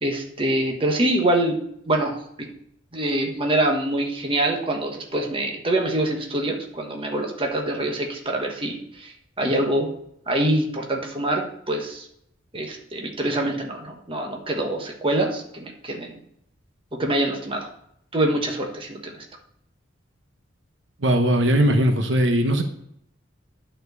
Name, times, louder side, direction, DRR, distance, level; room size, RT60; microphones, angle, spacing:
voice 1, 0.0-1.6 1.8-2.5 2.9-9.9 10.3-12.1 12.5-16.2 17.0-17.7 18.1-19.2, right 1 dB, 25° right, 2 dB, 1.2 m, -25 dB
voice 2, 21.0-22.6, right 1 dB, 70° right, 5 dB, 1.0 m, -19 dB
9.7 x 4.4 x 6.7 m, 0.73 s
head